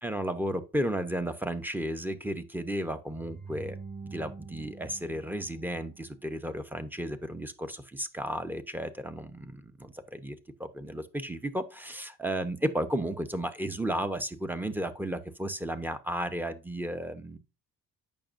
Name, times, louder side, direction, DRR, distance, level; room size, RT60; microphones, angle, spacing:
voice 1, 0.0-3.8 4.1-17.4, right 1 dB, 5° right, 0.8 m, -33 dB
sound 1, 3.1-6.3, right 4 dB, 25° right, 2.4 m, -45 dB
8.6 x 6.0 x 2.6 m
cardioid pair, 90°, 36 cm